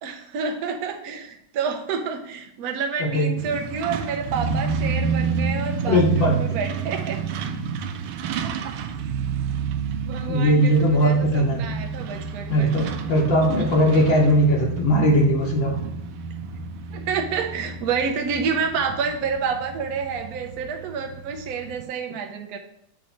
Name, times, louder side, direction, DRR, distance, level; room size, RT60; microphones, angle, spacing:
voice 1, 0.0-7.2 8.4-8.7 10.0-12.7 16.9-22.6, right 5 dB, 65° right, 3 dB, 1.0 m, -29 dB
Truck, 3.4-21.8, right 5 dB, 85° right, 1.5 m, -30 dB
voice 2, 5.8-6.3 10.3-11.6 12.5-15.7, equal, 65° left, -3 dB, 1.7 m, -19 dB
8.1 x 3.1 x 3.9 m, 0.75 s
omnidirectional pair, 2.3 m